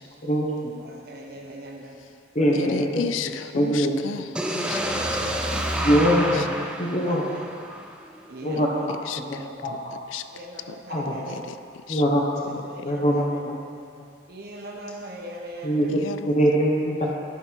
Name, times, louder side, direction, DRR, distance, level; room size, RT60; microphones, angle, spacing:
voice 1, 0.2-0.7 2.3-3.0 3.5-4.0 5.8-6.5 6.8-7.2 8.4-9.9 10.9-11.2 11.9-13.6 14.0-14.1 15.6-17.1, equal, 40° left, -3 dB, 0.9 m, -23 dB
voice 2, 0.8-2.0 2.4-2.8 5.1-5.4 5.7-6.1 6.8-7.4 8.3-8.8 9.3-9.6 10.3-11.5 12.6-13.4 14.3-15.8, right 1 dB, 55° right, -1 dB, 0.8 m, -40 dB
voice 3, 2.5-5.9 6.3-6.4 8.6-8.7 9.1-9.5 10.1-10.3 10.7-10.8 11.3-11.6 11.9-12.0 16.0-16.3, left 6 dB, 85° left, 11 dB, 0.4 m, -34 dB
sound 1, 4.3-8.3, right 1 dB, 5° right, 0.4 m, -28 dB
11.0 x 4.0 x 4.5 m, 2.3 s
head